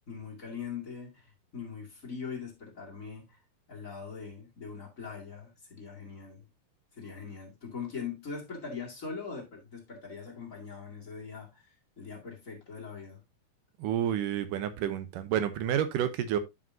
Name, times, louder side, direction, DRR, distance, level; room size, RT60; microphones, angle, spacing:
voice 1, 0.1-3.4 3.7-6.5 6.9-13.2, left 5 dB, 30° left, 2.0 m, -42 dB
voice 2, 13.8-16.4, right 10 dB, 80° right, 2.4 m, -29 dB
11.5 x 5.1 x 2.7 m
omnidirectional pair, 3.9 m